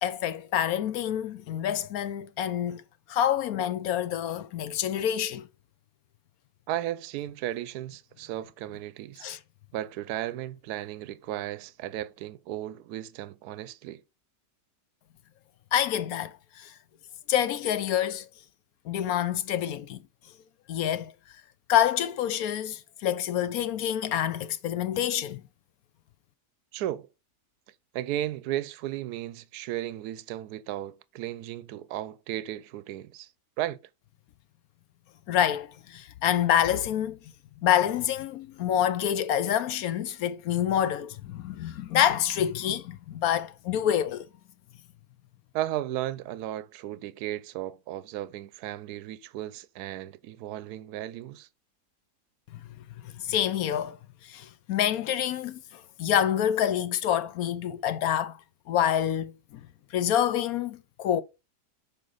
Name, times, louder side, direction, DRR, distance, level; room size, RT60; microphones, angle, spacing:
voice 1, 0.0-2.8 3.1-5.4 9.2-9.4 15.7-16.3 17.3-18.3 18.9-20.0 20.7-21.1 21.7-25.4 35.3-37.2 37.6-44.2 53.3-54.0 54.3-55.6 56.0-58.3 58.7-59.3 59.9-61.2, left 10 dB, 70° left, 1.0 m, -27 dB
voice 2, 6.7-9.3 9.7-14.0 26.7-27.1 27.9-33.3 33.6-33.8 45.5-51.5, right 13 dB, 75° right, 1.1 m, -35 dB
7.8 x 5.4 x 3.9 m
omnidirectional pair, 1.8 m